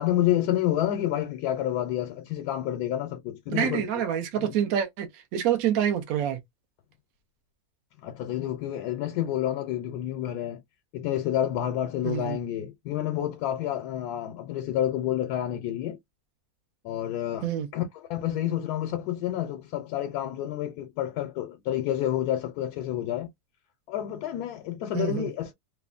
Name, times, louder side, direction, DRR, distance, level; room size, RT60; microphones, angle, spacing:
voice 1, 0.0-4.0 4.4-4.5 8.0-10.6 10.9-16.0 16.8-23.3 23.9-25.5, left 12 dB, 85° left, 1.1 m, -29 dB
voice 2, 3.5-6.4 12.0-12.4 17.4-17.7 24.9-25.3, right 9 dB, 70° right, 1.0 m, -27 dB
3.2 x 2.1 x 2.3 m
omnidirectional pair, 1.6 m